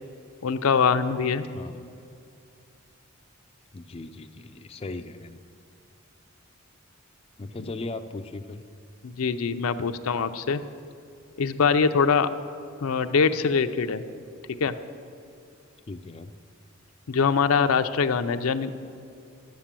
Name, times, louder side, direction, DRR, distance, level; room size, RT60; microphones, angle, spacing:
voice 1, 0.4-1.4 9.0-10.6 11.4-12.3 12.8-14.0 14.6-14.8 17.1-18.7, left 5 dB, 85° left, 9 dB, 0.5 m, -23 dB
voice 2, 1.5-1.9 3.7-5.4 7.4-8.6 15.9-16.3, left 2 dB, 25° left, 7 dB, 0.4 m, -38 dB
11.5 x 7.6 x 7.4 m, 2.5 s
head